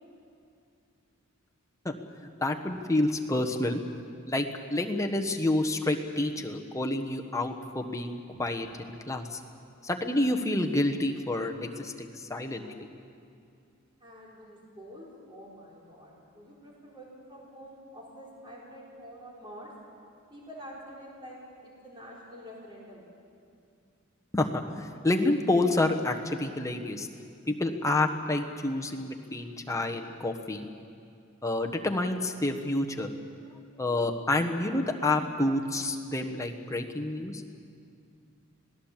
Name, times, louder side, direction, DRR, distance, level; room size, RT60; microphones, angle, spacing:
voice 1, 2.4-3.8 4.3-4.5 4.7-9.4 9.8-12.9 24.3-27.1 27.5-30.7 31.4-33.1 33.8-37.4, left 2 dB, 15° left, 3 dB, 1.2 m, -29 dB
voice 2, 14.0-19.7 20.3-21.4 21.6-23.1, equal, 25° right, -5 dB, 4.4 m, -47 dB
26.5 x 18.5 x 7.4 m, 2.4 s
head